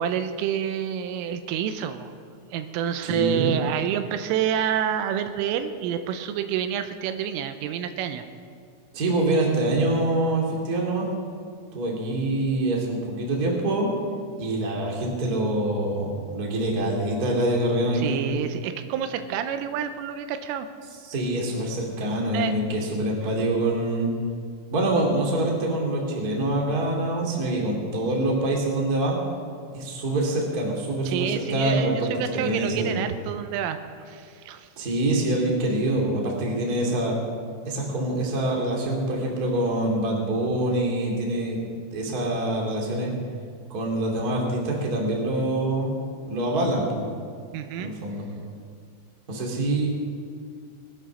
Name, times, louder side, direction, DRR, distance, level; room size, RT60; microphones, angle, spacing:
voice 1, 0.0-2.1 2.5-8.2 18.0-20.7 22.3-22.6 31.1-33.8 34.1-34.7 47.5-47.9, right 9 dB, 90° right, 9 dB, 3.3 m, -28 dB
voice 2, 3.0-3.5 8.9-11.1 11.7-13.9 14.4-18.2 21.0-24.1 24.7-29.2 29.7-32.1 32.3-33.0 34.8-37.2 37.7-41.6 41.9-43.1 43.7-45.9 46.3-47.1 47.8-48.3 49.3-49.9, right 1 dB, 30° right, -2 dB, 1.8 m, -25 dB
20.0 x 9.2 x 6.2 m, 2.2 s
omnidirectional pair, 5.8 m